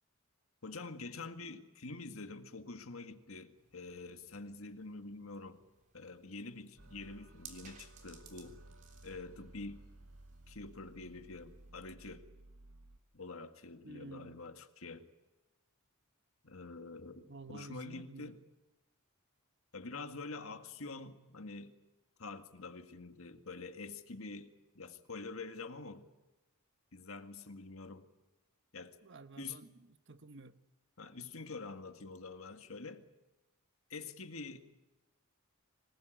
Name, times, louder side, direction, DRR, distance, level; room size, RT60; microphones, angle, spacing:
voice 1, 0.6-5.6 5.9-8.6 9.0-9.8 10.5-12.3 13.1-15.1 16.4-18.4 19.7-21.7 22.2-26.1 26.9-28.0 28.7-29.0 29.4-29.6 31.0-33.0 33.9-34.6, left 3 dB, 70° left, 1.9 m, -46 dB
sound 1, 3.6-11.7, right 6 dB, 35° right, 3.4 m, -61 dB
sound 2, 6.8-13.0, right 2 dB, 70° right, 1.6 m, -57 dB
voice 2, 13.8-14.4 17.3-18.4 29.0-30.6, right 3 dB, 55° right, 1.2 m, -51 dB
25.5 x 20.0 x 9.3 m
head